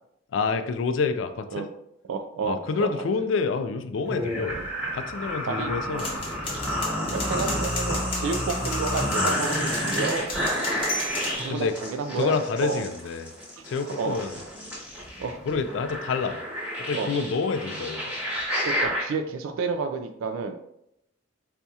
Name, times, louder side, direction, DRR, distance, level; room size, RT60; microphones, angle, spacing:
voice 1, 0.3-1.7 2.4-4.6 4.9-6.2 11.5-11.8 12.1-13.3 13.7-14.4 15.5-16.4 16.8-18.1, left 4 dB, 70° left, 9 dB, 0.3 m, -28 dB
voice 2, 2.1-2.9 4.5-4.6 5.5-5.7 7.1-10.6 11.4-12.8 14.0-14.2 15.2-15.4 16.9-17.1 18.6-20.5, right 4 dB, 90° right, 7 dB, 0.3 m, -30 dB
sound 1, 4.1-19.0, equal, 5° right, 1.1 m, -30 dB
sound 2, 6.0-11.4, left 2 dB, 25° left, 1.0 m, -34 dB
4.1 x 2.7 x 2.3 m, 0.79 s
head